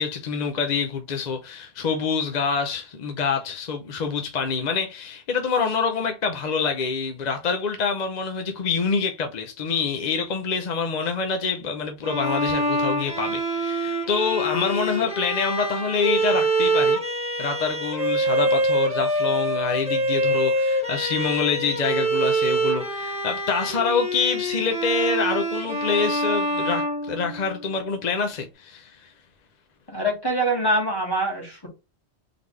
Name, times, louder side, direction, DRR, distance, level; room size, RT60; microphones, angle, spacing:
voice 1, 0.0-17.0 17.4-29.1, left 5 dB, 50° left, 0.6 m, -26 dB
Bowed string instrument, 12.0-27.8, right 1 dB, 5° right, 1.0 m, -25 dB
voice 2, 29.9-31.7, right 1 dB, 20° left, 1.5 m, -24 dB
3.9 x 3.4 x 3.1 m
omnidirectional pair, 1.1 m